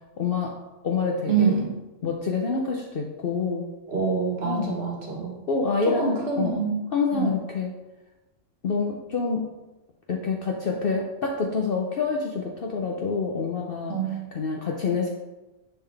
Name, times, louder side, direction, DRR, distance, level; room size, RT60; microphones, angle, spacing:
voice 1, 0.2-0.5 0.8-1.5 2.0-3.7 4.4-4.8 5.5-6.5 6.9-7.7 8.6-9.5 10.1-14.0 14.3-15.1, left 4 dB, 55° left, 0 dB, 0.8 m, -27 dB
voice 2, 1.3-1.7 3.9-5.4 5.8-6.8 7.1-7.3 13.9-14.3, right 5 dB, 50° right, -2 dB, 1.6 m, -26 dB
9.6 x 3.8 x 3.3 m, 1.1 s
omnidirectional pair, 1.4 m